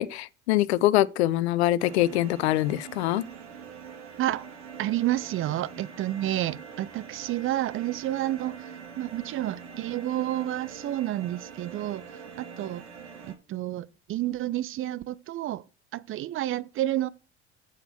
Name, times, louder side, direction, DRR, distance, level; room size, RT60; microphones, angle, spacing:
voice 1, 0.0-3.2, left 15 dB, 65° left, 0.6 m, -24 dB
sound 1, 1.8-13.3, right 6 dB, 75° right, 1.7 m, -44 dB
voice 2, 4.8-12.0 12.4-12.8 13.2-15.6 15.9-17.1, right 14 dB, 35° right, 0.6 m, -30 dB
7.4 x 6.9 x 5.9 m
figure-of-eight pair, 65°, 35 cm